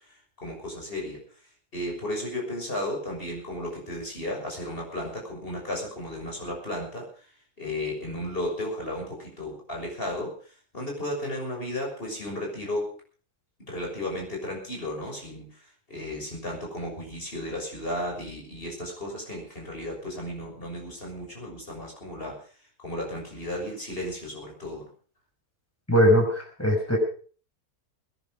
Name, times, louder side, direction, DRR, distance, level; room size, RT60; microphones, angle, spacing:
voice 1, 0.4-1.2 1.7-7.3 7.6-10.4 10.7-12.9 13.7-22.4 22.8-24.9, left 1 dB, 35° left, 0 dB, 6.7 m, -34 dB
voice 2, 25.9-27.0, equal, 10° left, 1 dB, 5.8 m, -21 dB
21.5 x 11.0 x 5.0 m, 0.41 s
omnidirectional pair, 1.6 m